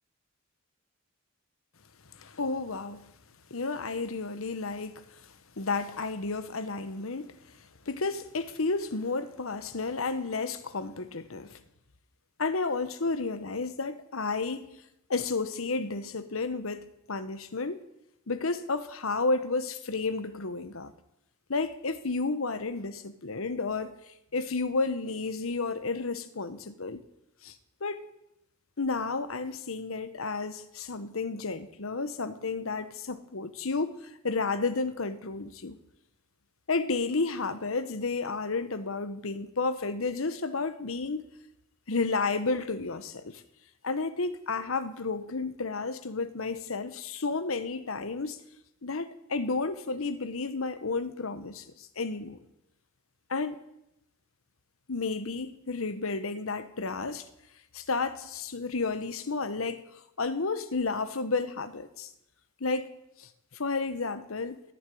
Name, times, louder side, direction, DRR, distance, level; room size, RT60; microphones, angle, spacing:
voice 1, 2.1-3.1 3.5-7.4 7.9-11.6 12.4-14.8 15.1-17.8 18.3-20.9 21.5-27.0 27.4-27.5 27.8-28.0 28.8-35.8 36.7-41.3 41.9-43.4 43.8-48.4 48.8-52.4 53.3-53.6 54.9-57.2 57.7-59.8 60.2-62.1 62.6-62.9 63.2-64.6, left 3 dB, 80° left, 1.1 m, -32 dB
14.0 x 7.2 x 9.3 m
head